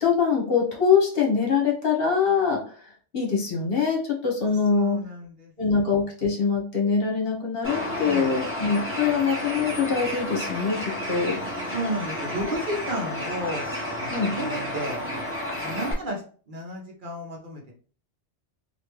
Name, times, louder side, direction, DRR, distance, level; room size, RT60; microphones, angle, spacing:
voice 1, 0.0-5.0 5.6-11.4 14.1-14.4, left 5 dB, 55° left, -1 dB, 1.2 m, -24 dB
voice 2, 4.7-5.5 8.0-8.4 11.7-15.0 15.6-16.2 16.5-17.7, right 1 dB, 50° right, 0 dB, 0.8 m, -33 dB
Bird, 7.6-15.9, left 1 dB, 15° right, 0.8 m, -31 dB
3.2 x 2.5 x 2.9 m, 0.42 s
omnidirectional pair, 1.2 m